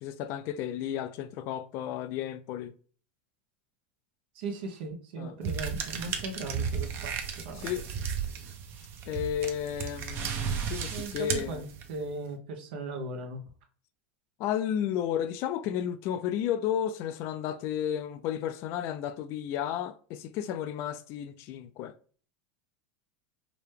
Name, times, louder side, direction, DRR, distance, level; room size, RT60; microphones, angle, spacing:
voice 1, 0.0-2.7 5.2-5.3 7.5-7.9 9.1-11.6 14.4-21.9, left 10 dB, 50° left, 0.4 m, -33 dB
voice 2, 4.3-7.1 7.4-7.7 10.9-13.4, right 3 dB, 70° right, 1.0 m, -38 dB
sound 1, 5.4-12.1, right 7 dB, 40° right, 0.7 m, -34 dB
4.9 x 2.2 x 3.3 m
supercardioid pair, 125°, 6 cm